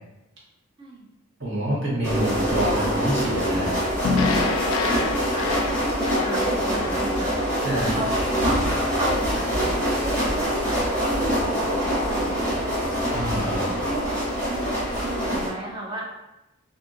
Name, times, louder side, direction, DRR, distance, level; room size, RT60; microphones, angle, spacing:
voice 1, 1.4-3.8 7.1-7.3 7.6-8.0 13.1-13.8, right 1 dB, 60° right, -6 dB, 1.0 m, -27 dB
sound 1, 2.0-15.5, equal, 10° left, 1.1 m, -24 dB
sound 2, 4.0-8.4, left 4 dB, 75° left, 0.3 m, -28 dB
voice 2, 4.8-7.3 7.9-8.6 8.9-9.8 10.0-12.5 13.6-16.1, right 1 dB, 20° right, -3 dB, 0.5 m, -34 dB
2.7 x 2.6 x 2.4 m, 0.97 s
head